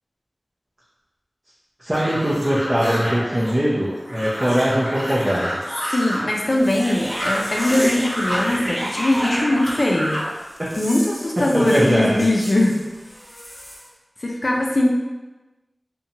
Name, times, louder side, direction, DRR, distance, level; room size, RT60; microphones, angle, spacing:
voice 1, 1.8-5.6 10.6-10.7 11.5-12.3, equal, 30° right, -8 dB, 0.5 m, -21 dB
sound 1, 1.9-10.3, equal, ahead, 1.1 m, -28 dB
voice 2, 5.8-10.2 10.7-12.8 14.2-15.0, left 1 dB, 60° left, -1 dB, 0.4 m, -20 dB
sound 2, 6.6-13.9, equal, 20° left, 0.7 m, -38 dB
2.6 x 2.1 x 2.7 m, 1.1 s
wide cardioid pair, 45°, 0 cm